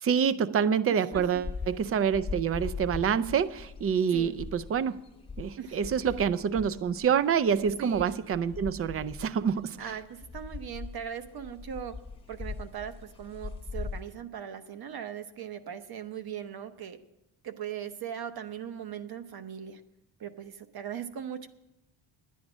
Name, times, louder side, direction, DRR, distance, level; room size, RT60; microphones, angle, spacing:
voice 1, 0.0-5.0 5.4-10.0, right 7 dB, 30° right, 0.4 m, -27 dB
voice 2, 0.9-1.4 4.1-4.4 5.6-5.8 7.8-8.2 9.8-11.9 12.3-17.0 17.4-19.8 20.2-21.5, right 8 dB, 50° right, 0.9 m, -39 dB
sound 1, 1.1-14.0, left 4 dB, 10° left, 0.8 m, -41 dB
10.5 x 10.0 x 6.1 m
cardioid pair, 145°, 47 cm